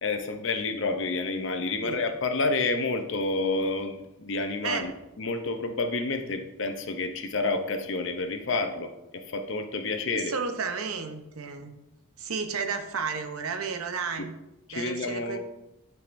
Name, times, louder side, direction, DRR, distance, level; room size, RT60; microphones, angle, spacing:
voice 1, 0.0-4.9 5.2-10.3 14.2-14.3 14.7-15.4, left 3 dB, 60° left, 6 dB, 0.6 m, -29 dB
voice 2, 4.6-4.9 10.1-11.7 12.2-14.4 14.7-15.4, right 5 dB, 80° right, 7 dB, 0.7 m, -32 dB
10.0 x 4.7 x 2.6 m, 0.93 s
head